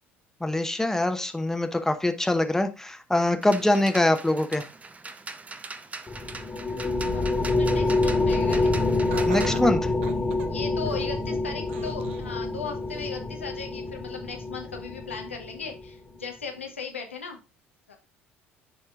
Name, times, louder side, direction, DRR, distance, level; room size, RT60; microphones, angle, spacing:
voice 1, 0.4-4.6 9.3-9.9, left 1 dB, 5° left, 7 dB, 0.9 m, -24 dB
sound 1, 3.4-9.6, right 3 dB, 20° right, 0.7 m, -41 dB
sound 2, 6.1-15.8, left 2 dB, 25° left, 1.5 m, -27 dB
voice 2, 7.6-8.7 10.5-17.4 17.9-18.0, left 5 dB, 90° left, 3 dB, 0.9 m, -37 dB
Laughter, 9.1-11.2 11.7-12.3 12.8-12.9 13.9-14.0, right 9 dB, 75° right, 0.5 m, -40 dB
10.5 x 4.3 x 2.3 m, 0.29 s
figure-of-eight pair, 60°, 6 cm